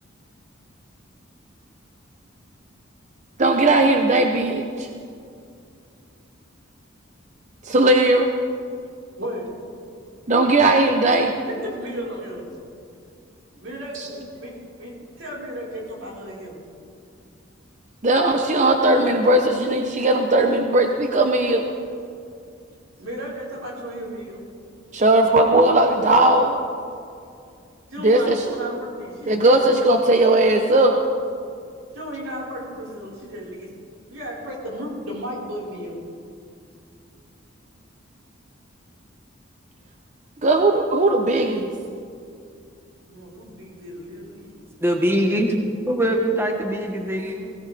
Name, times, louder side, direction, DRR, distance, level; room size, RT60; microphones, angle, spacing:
voice 1, 3.4-4.9 7.6-8.3 10.3-11.3 18.0-21.7 24.9-26.6 28.0-28.4 29.3-31.0 40.4-41.7, right 2 dB, 40° right, 4 dB, 0.8 m, -18 dB
voice 2, 9.2-9.5 11.4-12.5 13.5-16.6 23.0-24.4 27.9-29.7 31.9-33.7 34.1-36.0 43.1-44.6, equal, 85° right, -4 dB, 4.6 m, -34 dB
voice 3, 44.8-45.5 45.9-47.5, equal, 10° right, 2 dB, 1.2 m, -22 dB
20.5 x 17.0 x 3.4 m, 2.4 s
head